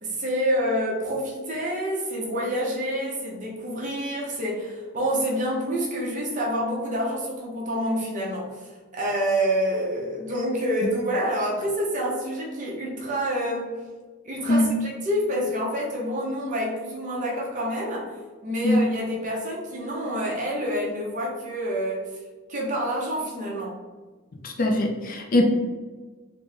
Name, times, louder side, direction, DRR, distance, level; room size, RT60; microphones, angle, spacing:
voice 1, 0.0-13.8 14.2-18.1 18.4-22.1 22.5-23.8, equal, 35° right, -3 dB, 0.8 m, -27 dB
voice 2, 24.3-25.4, left 1 dB, 40° left, 2 dB, 0.4 m, -22 dB
4.1 x 2.1 x 3.3 m, 1.4 s
head